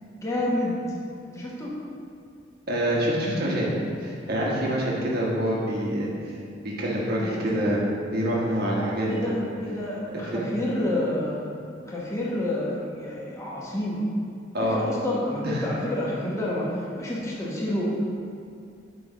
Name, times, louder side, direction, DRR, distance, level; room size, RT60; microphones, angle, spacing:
voice 1, 0.2-0.8 1.3-1.7 7.2-7.7 9.1-11.5 11.9-14.0 14.6-18.0, left 1 dB, 15° left, -6 dB, 1.3 m, -29 dB
voice 2, 2.7-3.7 4.0-6.3 6.6-9.4 10.1-10.5 14.5-14.9 15.4-15.7, equal, 55° right, -5 dB, 1.3 m, -26 dB
9.3 x 3.5 x 5.1 m, 2.3 s
head